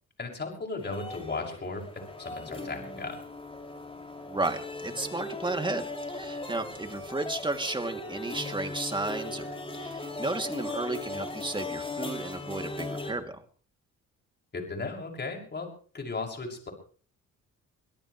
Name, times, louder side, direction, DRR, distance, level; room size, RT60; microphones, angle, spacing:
voice 1, 0.2-3.2 14.5-16.7, left 3 dB, 35° left, 2 dB, 6.4 m, -36 dB
sound 1, 0.8-13.1, left 2 dB, 20° left, 6.2 m, -38 dB
voice 2, 4.3-13.4, right 2 dB, 15° right, 5 dB, 2.8 m, -33 dB
24.5 x 17.5 x 3.3 m, 0.43 s
cardioid pair, 90°, 30 cm